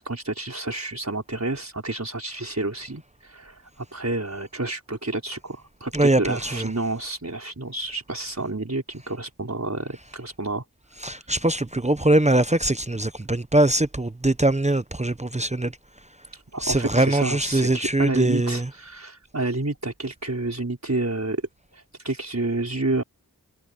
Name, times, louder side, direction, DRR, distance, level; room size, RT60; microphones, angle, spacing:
voice 1, 0.0-10.6 11.1-11.3 16.3-21.4 21.7-23.0, right 2 dB, 45° right, 5.1 m, -29 dB
voice 2, 5.9-6.7 11.0-15.7 16.6-18.7, right 1 dB, 20° right, 0.7 m, -22 dB
wide cardioid pair, 55°, 37 cm